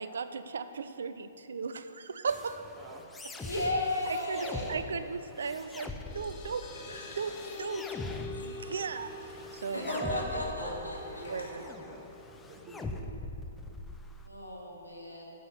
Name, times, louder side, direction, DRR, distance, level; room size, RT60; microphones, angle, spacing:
voice 1, 0.0-2.6 4.3-6.6 6.9-7.3 7.6-7.9 8.3-9.1 9.5-9.9 11.3-11.6, right 5 dB, 65° right, 11 dB, 0.7 m, -36 dB
sound 1, 2.3-14.3, left 2 dB, 10° left, 0.7 m, -43 dB
voice 2, 3.4-4.7 9.7-11.2 14.2-15.3, left 1 dB, 90° left, -3 dB, 2.9 m, -34 dB
sound 2, 5.7-12.7, left 4 dB, 25° left, 1.2 m, -46 dB
Glass / Trickle dribble / Fill (with liquid), 5.9-12.6, left 2 dB, 75° left, 2.2 m, -54 dB
voice 3, 9.8-12.2 12.5-13.8, right 3 dB, 30° right, 2 dB, 1.6 m, -45 dB
11.0 x 7.7 x 8.7 m, 2.9 s
figure-of-eight pair, 120°, 0 cm